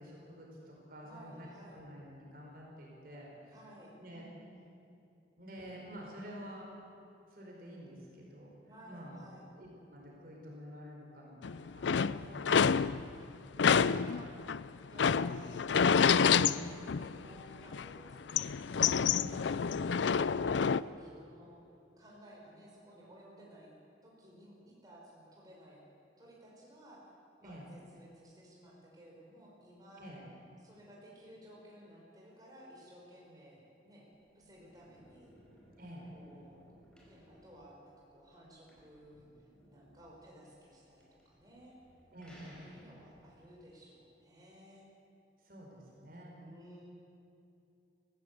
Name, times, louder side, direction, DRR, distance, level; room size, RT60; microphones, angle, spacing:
voice 1, 0.0-1.5 1.7-3.3 4.0-4.2 5.4-6.7 7.3-8.5 8.9-12.5 19.2-19.4 27.4-27.7 30.0-30.2 35.8-36.1 42.1-42.7 45.4-46.4, equal, 55° right, -2 dB, 4.7 m, -49 dB
voice 2, 1.0-1.8 3.5-4.8 8.6-9.5 11.9-13.3 13.7-14.3 14.8-15.7 16.0-21.6 22.0-23.7 24.0-25.8 26.2-27.1 27.4-30.1 30.6-34.1 34.3-35.3 36.1-36.6 37.0-41.8 42.6-44.8 46.3-46.9, equal, 20° right, -4 dB, 5.0 m, -56 dB
sound 1, 11.4-13.2 13.6-17.4 17.7-20.8, left 6 dB, 85° left, 0.5 m, -28 dB
sound 2, 34.1-43.4, equal, 5° left, 5.0 m, -62 dB
23.0 x 15.5 x 8.4 m, 2.7 s
head